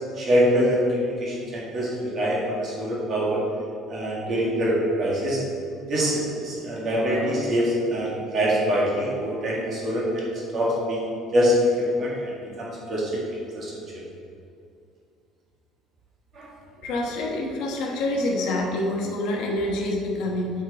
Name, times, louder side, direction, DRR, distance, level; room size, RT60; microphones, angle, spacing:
voice 1, 0.2-3.4 3.9-5.4 5.9-11.0 11.3-13.2 13.5-13.7 16.3-16.5, equal, 30° right, -4 dB, 1.7 m, -24 dB
voice 2, 16.8-20.5, left 1 dB, 60° left, -1 dB, 1.1 m, -26 dB
7.7 x 5.4 x 4.1 m, 2.5 s
cardioid pair, 175°, 0 cm